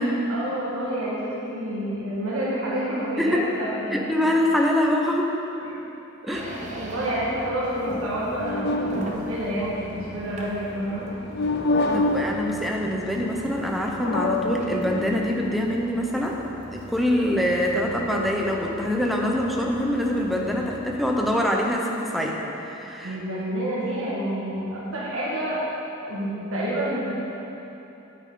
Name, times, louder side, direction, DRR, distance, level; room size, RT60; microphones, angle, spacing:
voice 1, 0.3-4.3 5.6-5.7 6.2-11.0 11.4-11.5 23.0-25.6 26.0-27.1, right 1 dB, 85° right, -7 dB, 1.7 m, -29 dB
voice 2, 3.9-5.3 6.2-6.5 11.7-16.4 16.7-23.2, left 1 dB, ahead, -1 dB, 0.8 m, -24 dB
sound 1, 6.3-21.4, right 1 dB, 35° right, 0.9 m, -41 dB
sound 2, 6.5-10.6 11.3-12.9 13.2-15.6, left 2 dB, 55° left, 0.5 m, -29 dB
9.0 x 8.6 x 3.8 m, 3.0 s
head